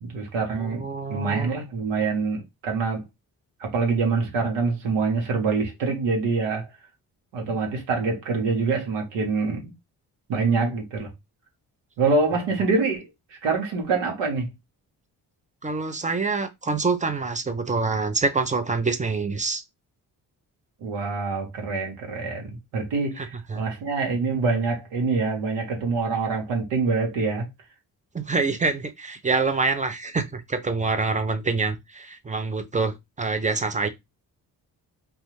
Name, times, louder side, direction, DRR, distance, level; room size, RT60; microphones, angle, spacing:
voice 1, 0.0-0.8 1.1-3.0 3.6-6.7 7.3-9.7 10.3-11.1 12.0-14.5 20.8-27.5, right 4 dB, 80° right, 0.9 m, -25 dB
voice 2, 0.6-1.5 15.6-19.6 23.2-23.6 28.1-33.9, right 4 dB, 15° right, 0.5 m, -26 dB
2.3 x 2.2 x 3.0 m
supercardioid pair, 50°, 44 cm